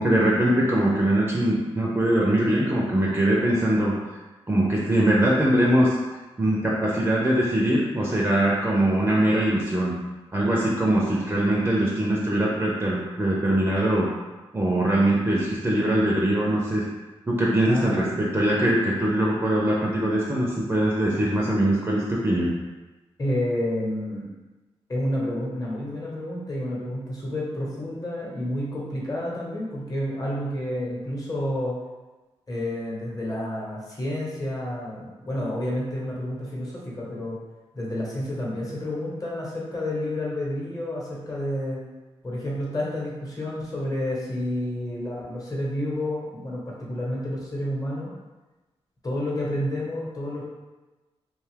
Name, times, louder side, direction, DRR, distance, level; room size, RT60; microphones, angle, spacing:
voice 1, 0.0-4.0 4.5-6.0 6.4-9.9 10.3-14.1 14.5-16.8 17.3-22.5, right 1 dB, 20° right, -4 dB, 0.5 m, -22 dB
voice 2, 17.6-18.1 23.2-24.3 24.9-31.7 32.5-37.4 37.7-41.8 42.2-48.1 49.0-50.4, left 1 dB, 35° left, -4 dB, 1.0 m, -30 dB
2.6 x 2.3 x 3.3 m, 1.2 s
cardioid pair, 80°, 11 cm